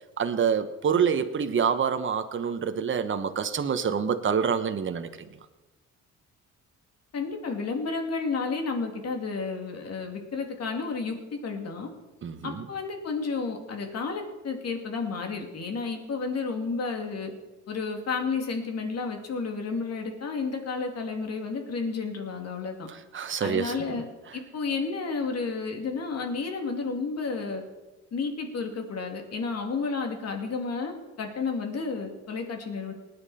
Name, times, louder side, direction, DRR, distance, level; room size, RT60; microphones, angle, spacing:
voice 1, 0.2-5.3 12.2-12.7 23.1-24.0, right 7 dB, 40° right, 8 dB, 1.1 m, -27 dB
voice 2, 7.1-11.9 12.4-17.3 17.7-22.9 23.4-24.0 24.3-27.6 28.1-32.9, left 4 dB, 55° left, 3 dB, 2.6 m, -31 dB
19.0 x 9.8 x 4.3 m, 1.1 s
cardioid pair, 90°, 30 cm